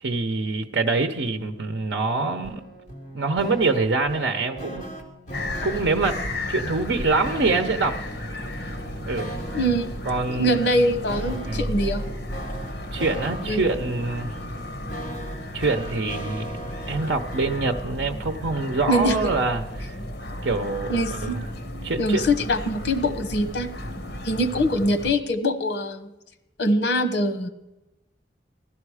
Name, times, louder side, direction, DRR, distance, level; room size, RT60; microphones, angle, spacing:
voice 1, 0.0-2.7 3.1-4.9 5.6-6.2 6.5-8.0 9.1-9.3 10.1-10.6 11.5-11.8 12.9-14.3 15.5-16.5 16.9-19.9 20.4-21.5 21.8-22.2, right 3 dB, 85° right, 6 dB, 0.8 m, -25 dB
sound 1, 2.4-17.7, right 1 dB, 45° left, 2.0 m, -39 dB
sound 2, 5.3-25.1, left 1 dB, 65° left, 1.6 m, -34 dB
voice 2, 9.5-9.9 10.3-12.1 13.4-13.6 18.9-19.2 20.9-21.4 22.0-23.7 24.2-26.1 26.6-27.5, equal, 85° left, 11 dB, 1.2 m, -23 dB
sound 3, 11.1-13.7 14.0-14.1, equal, 20° left, 2.8 m, -35 dB
15.0 x 12.0 x 4.9 m, 0.95 s
head